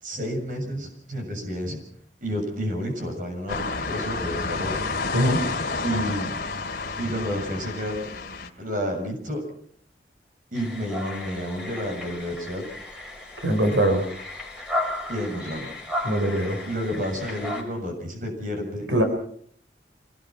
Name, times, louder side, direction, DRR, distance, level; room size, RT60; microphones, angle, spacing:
voice 1, 0.0-1.8 2.2-4.8 5.8-6.4 7.0-8.1 8.6-9.4 10.5-12.6 15.1-15.7 16.7-18.9, equal, 45° right, 4 dB, 7.0 m, -30 dB
sound 1, 3.5-8.5, left 3 dB, 50° left, 2.7 m, -30 dB
voice 2, 5.1-5.4 13.4-14.1 16.0-16.6 18.9-19.0, right 1 dB, 90° right, 5 dB, 4.9 m, -22 dB
sound 2, 10.5-17.6, left 1 dB, 5° right, 5.4 m, -34 dB
26.5 x 19.0 x 6.0 m, 0.62 s
head